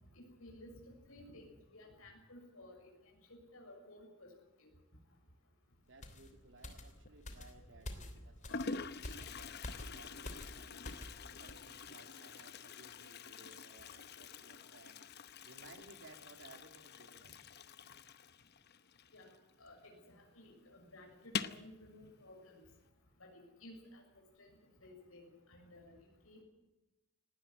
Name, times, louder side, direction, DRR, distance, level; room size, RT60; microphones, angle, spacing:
voice 1, 0.1-0.7 1.0-2.9 3.3-4.3 4.6-4.7 19.1-19.3 19.6-22.6 23.2-24.0 24.4-24.6 24.8-26.0 26.2-26.4, left 1 dB, 85° left, 1 dB, 6.8 m, -56 dB
voice 2, 5.9-15.0 15.4-17.4, right 2 dB, 65° right, 6 dB, 3.0 m, -60 dB
sound 1, 6.0-11.2 11.5-11.7, left 1 dB, 35° left, 3.1 m, -48 dB
Toilet flush, 7.0-7.5 8.2-8.3 8.5-19.8 20.0-20.1 20.4-20.5 21.2-21.7, left 5 dB, 50° left, 0.9 m, -46 dB
19.0 x 18.5 x 9.4 m, 1.0 s
head